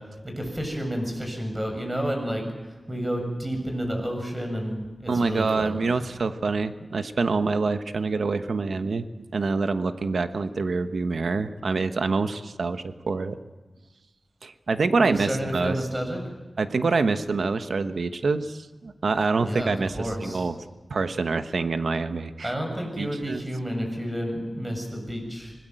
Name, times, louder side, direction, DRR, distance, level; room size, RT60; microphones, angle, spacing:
voice 1, 0.2-2.4 2.9-5.8 15.0-16.2 19.4-20.5 22.4-25.5, equal, 15° right, 3 dB, 7.2 m, -30 dB
voice 2, 5.1-9.1 9.3-13.4 14.4-15.8 16.6-20.6 20.9-22.5 23.0-23.4, right 4 dB, 80° right, 9 dB, 1.2 m, -26 dB
26.0 x 20.0 x 7.8 m, 1.2 s
wide cardioid pair, 90°, 0 cm